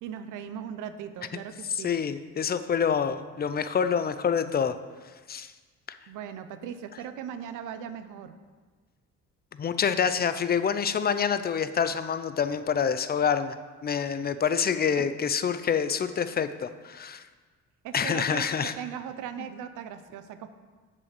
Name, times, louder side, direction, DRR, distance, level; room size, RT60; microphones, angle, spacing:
voice 1, 0.0-1.9 6.1-8.4 14.9-15.0 17.8-20.5, right 8 dB, 90° right, 10 dB, 0.6 m, -38 dB
voice 2, 1.7-4.8 5.3-5.5 9.6-13.6 13.8-17.2 17.9-18.7, left 7 dB, 30° left, 11 dB, 0.5 m, -27 dB
7.0 x 5.3 x 6.6 m, 1.4 s
cardioid pair, 90°, 30 cm